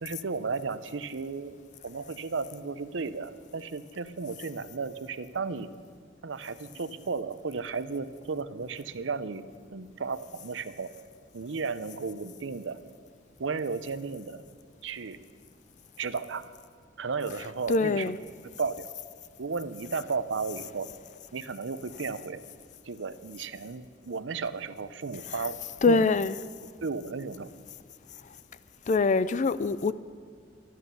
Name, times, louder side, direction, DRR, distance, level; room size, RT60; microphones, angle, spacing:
voice 1, 0.0-1.6 1.8-5.7 6.2-9.4 9.7-10.9 11.3-12.8 13.4-14.4 14.8-15.2 16.0-16.5 17.0-18.0 18.6-18.9 19.4-20.9 21.3-22.4 22.8-25.6 25.9-26.1 26.8-27.5, right 4 dB, 70° right, 0.6 m, -34 dB
voice 2, 17.7-18.2 25.8-26.4 28.9-29.9, left 3 dB, 40° left, 0.4 m, -23 dB
13.0 x 11.0 x 6.9 m
head